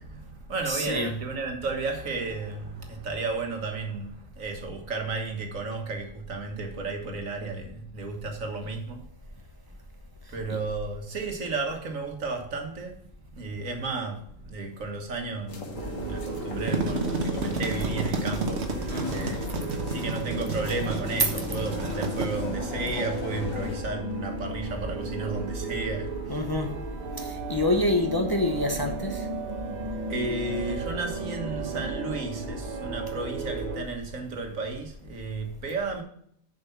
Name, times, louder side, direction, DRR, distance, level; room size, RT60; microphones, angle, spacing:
voice 1, 0.0-9.0 10.3-26.7 30.1-36.0, right 3 dB, 80° right, 1.8 m, -33 dB
voice 2, 0.7-1.1 10.5-10.6 18.9-19.3 26.3-26.7 27.2-29.3, left 2 dB, 20° left, 0.8 m, -27 dB
sound 1, 15.5-23.8, left 3 dB, 75° left, 1.6 m, -38 dB
sound 2, 15.7-33.8, right 3 dB, 35° right, 1.3 m, -35 dB
sound 3, 16.7-22.3, right 2 dB, 60° right, 1.3 m, -31 dB
6.8 x 5.3 x 7.1 m
omnidirectional pair, 1.4 m